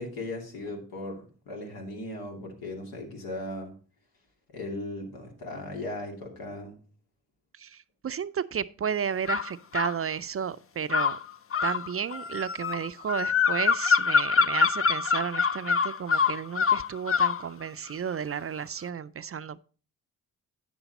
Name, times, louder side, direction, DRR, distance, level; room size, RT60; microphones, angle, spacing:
voice 1, 0.0-3.7 4.5-6.8, left 2 dB, 80° left, 2.6 m, -37 dB
voice 2, 7.6-11.2 11.6-19.6, right 7 dB, 40° right, 0.5 m, -33 dB
sound 1, 9.3-10.0 10.9-17.4, left 6 dB, 40° left, 0.6 m, -25 dB
8.9 x 7.0 x 4.1 m
cardioid pair, 65°, 36 cm